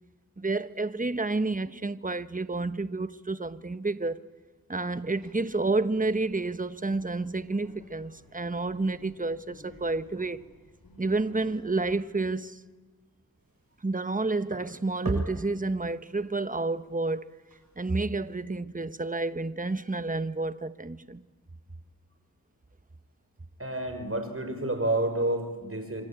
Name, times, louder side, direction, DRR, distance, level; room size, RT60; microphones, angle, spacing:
voice 1, 0.4-4.2 4.7-10.4 11.0-12.6 13.8-17.2 17.8-21.2, right 3 dB, 25° right, 1.1 m, -30 dB
sound 1, 4.9-12.0, left 1 dB, 80° left, 6.4 m, -54 dB
sound 2, 13.4-18.4, right 2 dB, 75° right, 6.8 m, -48 dB
voice 2, 23.6-26.0, right 1 dB, 40° right, 5.9 m, -29 dB
26.0 x 25.5 x 9.0 m
wide cardioid pair, 40°, 35 cm